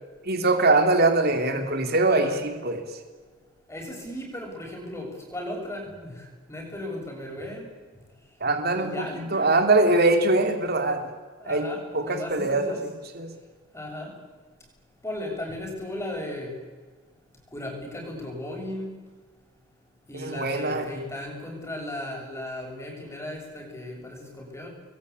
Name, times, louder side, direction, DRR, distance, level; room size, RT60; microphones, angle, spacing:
voice 1, 0.2-2.8 8.4-11.1 11.5-11.7 11.9-12.8 13.1-13.3 20.1-20.9, right 2 dB, 50° right, 6 dB, 3.6 m, -22 dB
voice 2, 2.1-2.5 3.7-6.1 6.5-7.7 8.7-9.6 11.4-12.8 13.7-14.1 15.0-16.5 17.5-18.9 20.1-24.7, left 1 dB, 15° left, 1 dB, 7.3 m, -36 dB
28.0 x 22.0 x 8.6 m, 1.5 s
head